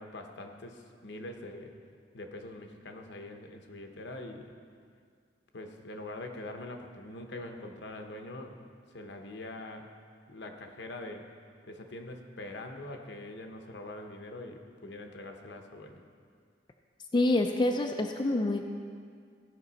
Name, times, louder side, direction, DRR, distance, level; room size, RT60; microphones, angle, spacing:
voice 1, 0.0-1.7 2.1-4.4 5.5-8.6 8.9-9.9 10.3-11.2 11.7-16.0, left 2 dB, 70° left, 4 dB, 0.9 m, -43 dB
voice 2, 17.1-18.6, left 2 dB, 25° left, 3 dB, 0.4 m, -26 dB
15.5 x 5.3 x 4.1 m, 2.1 s
head